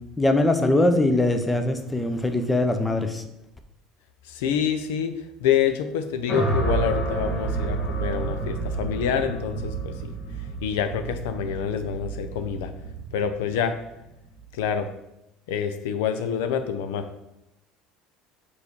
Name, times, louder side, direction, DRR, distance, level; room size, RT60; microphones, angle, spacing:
voice 1, 0.2-3.2, left 2 dB, 10° left, 7 dB, 0.7 m, -22 dB
voice 2, 4.3-5.1 5.4-9.9 10.6-12.7 13.1-13.8 14.5-14.9 15.5-17.1, left 8 dB, 90° left, 9 dB, 0.6 m, -26 dB
sound 1, 6.3-14.5, right 3 dB, 50° left, 2.0 m, -30 dB
4.9 x 4.7 x 5.3 m, 0.86 s
supercardioid pair, 115°, 0 cm